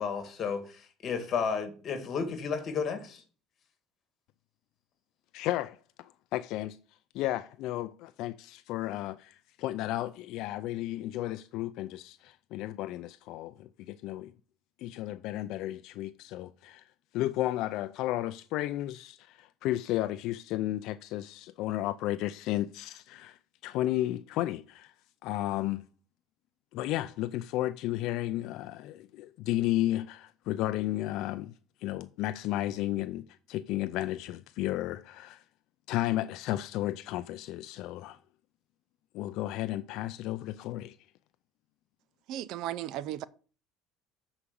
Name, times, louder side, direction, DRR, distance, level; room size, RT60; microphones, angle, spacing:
voice 1, 0.0-3.2, left 6 dB, 35° left, 2.0 m, -32 dB
voice 2, 5.3-6.8 7.1-14.3 14.8-16.8 17.1-23.4 23.6-24.9 25.2-25.8 26.7-31.5 31.8-35.4 35.9-38.2 39.1-41.0, left 15 dB, 60° left, 0.4 m, -33 dB
voice 3, 42.3-43.2, right 12 dB, 55° right, 0.4 m, -35 dB
7.0 x 4.9 x 6.9 m
cardioid pair, 145°, 0 cm